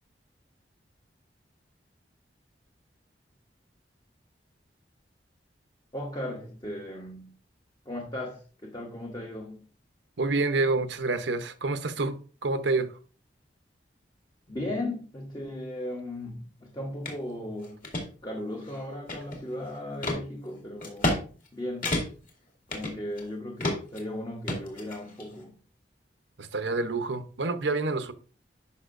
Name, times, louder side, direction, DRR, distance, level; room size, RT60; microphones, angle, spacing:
voice 1, 5.9-7.4 7.9-9.7 14.5-17.9 18.2-21.2 21.5-21.9 22.7-25.6, left 1 dB, 25° left, 0.9 m, -36 dB
voice 2, 10.2-12.9 26.4-28.1, right 3 dB, 85° right, 0.8 m, -28 dB
sound 1, 17.0-17.2 17.6-18.0 18.6-19.5 20.0-20.2 20.8-21.2 21.5-21.6 21.8-22.3 22.7-23.3 23.6-24.0 24.5-25.3, left 1 dB, 50° left, 2.5 m, -30 dB
11.0 x 5.7 x 2.6 m
head